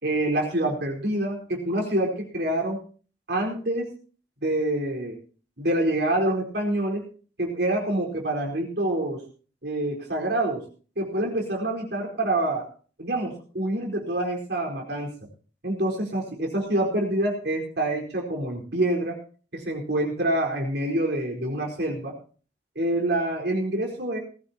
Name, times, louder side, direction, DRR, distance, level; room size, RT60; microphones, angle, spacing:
voice 1, 0.0-2.8 3.3-3.9 4.4-5.2 5.6-7.1 7.4-9.2 9.6-10.7 11.0-12.6 13.0-15.2 15.6-19.2 19.5-22.1 22.7-24.2, right 1 dB, 65° right, 0 dB, 4.5 m, -26 dB
20.0 x 15.0 x 2.9 m, 0.40 s
head